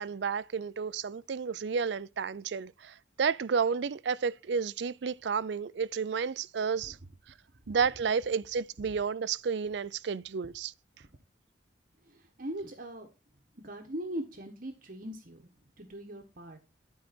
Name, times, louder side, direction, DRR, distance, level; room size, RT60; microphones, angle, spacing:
voice 1, 0.0-7.0 7.7-10.7, right 6 dB, 65° right, 0.4 m, -31 dB
voice 2, 12.1-13.1 13.6-15.4 15.8-16.6, right 1 dB, 50° right, 1.3 m, -40 dB
11.5 x 4.7 x 4.3 m
head